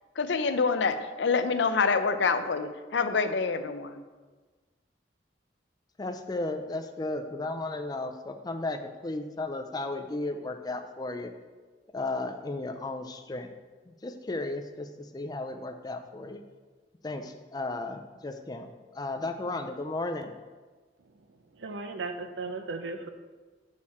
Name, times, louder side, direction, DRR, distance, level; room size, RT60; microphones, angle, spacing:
voice 1, 0.2-4.0, left 4 dB, 75° left, 9 dB, 0.6 m, -26 dB
voice 2, 6.0-11.3 11.9-13.5 14.0-14.9 15.1-16.4 17.0-18.7 18.9-20.3, left 2 dB, 20° left, 6 dB, 0.4 m, -34 dB
voice 3, 21.5-23.1, right 3 dB, 75° right, 7 dB, 0.6 m, -36 dB
7.1 x 6.4 x 4.2 m, 1.3 s
head